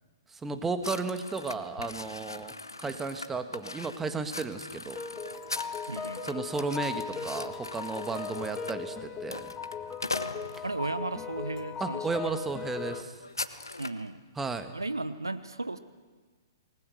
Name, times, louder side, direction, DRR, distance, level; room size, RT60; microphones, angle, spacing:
voice 1, 0.3-2.5 2.8-5.0 6.2-9.5 10.5-10.6 11.8-13.2 14.4-14.8, right 4 dB, 10° right, 8 dB, 1.6 m, -34 dB
sound 1, 0.8-11.0 11.6-11.8 12.1-12.3 12.6-14.1, left 2 dB, 85° left, 1.0 m, -40 dB
sound 2, 5.0-13.0, left 6 dB, 20° left, 1.4 m, -38 dB
voice 2, 5.9-6.4 10.6-12.0 13.8-14.2 14.7-15.8, right 2 dB, 85° right, 13 dB, 1.0 m, -35 dB
28.0 x 19.5 x 6.5 m, 1.4 s
figure-of-eight pair, 115°, 2 cm